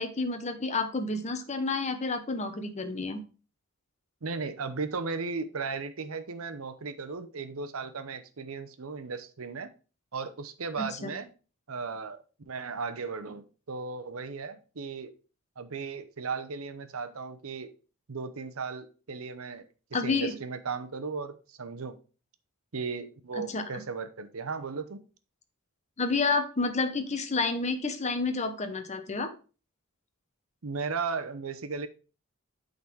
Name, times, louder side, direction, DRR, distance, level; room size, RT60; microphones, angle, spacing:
voice 1, 0.0-3.2 10.8-11.1 19.9-20.3 23.5-23.6 26.0-29.3, left 3 dB, 35° left, 0.9 m, -30 dB
voice 2, 4.2-9.7 10.1-11.3 11.7-12.2 12.5-15.1 15.6-17.7 18.1-19.6 20.0-22.0 22.7-25.0 30.6-31.9, right 4 dB, 80° right, 0.8 m, -36 dB
8.6 x 4.0 x 4.6 m
head